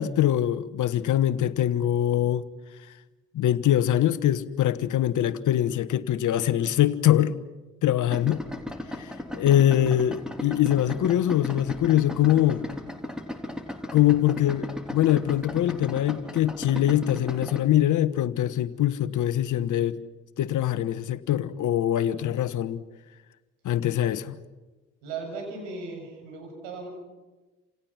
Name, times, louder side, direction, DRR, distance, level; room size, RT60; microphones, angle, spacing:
voice 1, 0.0-2.4 3.3-7.4 7.8-8.4 8.9-12.6 13.9-20.0 20.4-22.8 23.6-24.4, left 12 dB, 55° left, 1.3 m, -23 dB
Idling, 8.1-17.6, left 1 dB, ahead, 3.5 m, -36 dB
voice 2, 25.0-26.9, right 4 dB, 75° right, 7.7 m, -37 dB
28.0 x 28.0 x 6.0 m
hypercardioid pair, 50°, 37 cm